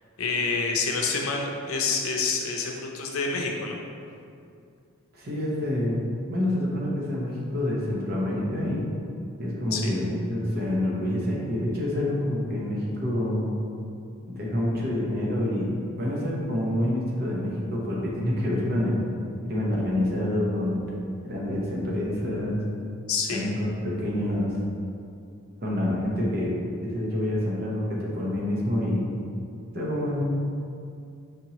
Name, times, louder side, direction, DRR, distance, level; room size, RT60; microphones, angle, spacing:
voice 1, 0.2-3.8 9.7-9.9 23.1-23.5, left 4 dB, 85° left, 1 dB, 0.6 m, -27 dB
voice 2, 5.1-6.0 6.3-8.9 9.4-13.5 14.3-19.0 19.4-20.8 21.2-22.6 23.3-24.6 25.6-26.6 26.8-29.1 29.7-30.2, left 1 dB, 45° right, -4 dB, 0.8 m, -27 dB
5.2 x 2.9 x 2.9 m, 2.4 s
head